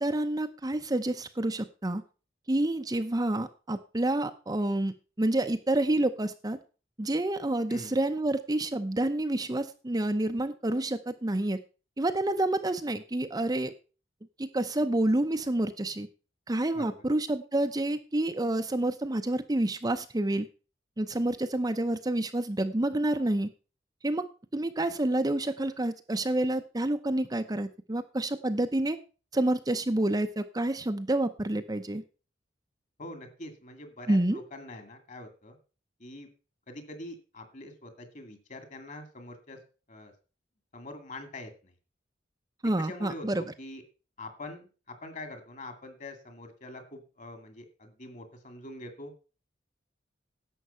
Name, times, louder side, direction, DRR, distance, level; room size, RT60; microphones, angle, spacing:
voice 1, 0.0-2.0 2.5-6.6 7.0-11.6 12.0-13.7 14.4-16.1 16.5-20.5 21.0-23.5 24.0-24.3 24.5-29.0 29.3-32.0 34.1-34.4 42.6-43.4, right 1 dB, 20° right, 8 dB, 0.6 m, -28 dB
voice 2, 33.0-35.6 36.0-36.3 36.7-39.6 39.9-40.1 40.7-41.7 42.8-43.8 44.2-49.1, left 1 dB, 45° left, 7 dB, 2.3 m, -44 dB
11.0 x 7.7 x 5.5 m, 0.35 s
head